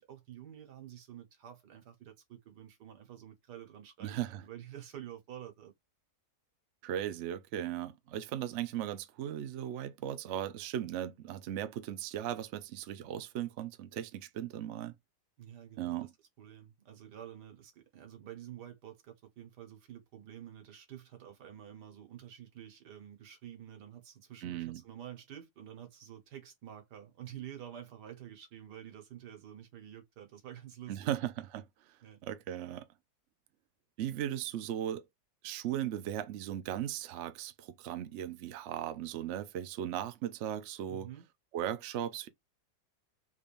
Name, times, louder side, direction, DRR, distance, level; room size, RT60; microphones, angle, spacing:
voice 1, 0.0-5.7 15.4-16.1 16.4-31.1 32.0-32.2 40.9-41.2, right 11 dB, 90° right, 1.8 m, -49 dB
voice 2, 4.0-4.4 6.8-14.9 15.8-16.1 24.4-24.8 30.9-32.0 32.2-32.9 34.0-35.0 35.4-41.1 41.5-42.3, right 11 dB, 60° right, 0.8 m, -37 dB
3.8 x 3.4 x 2.5 m
omnidirectional pair, 1.7 m